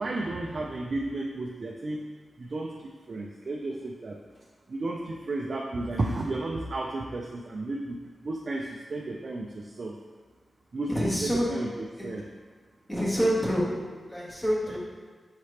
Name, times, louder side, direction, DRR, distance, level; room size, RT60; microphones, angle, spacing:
voice 1, 0.0-2.1 2.4-4.2 4.7-10.0 10.7-12.3 14.7-14.8, right 2 dB, 45° right, -1 dB, 0.3 m, -33 dB
voice 2, 10.9-11.5 12.0-12.1 12.9-13.7 14.1-14.8, equal, 10° left, -5 dB, 1.0 m, -26 dB
5.7 x 2.8 x 3.2 m, 1.5 s
wide cardioid pair, 145°, 0 cm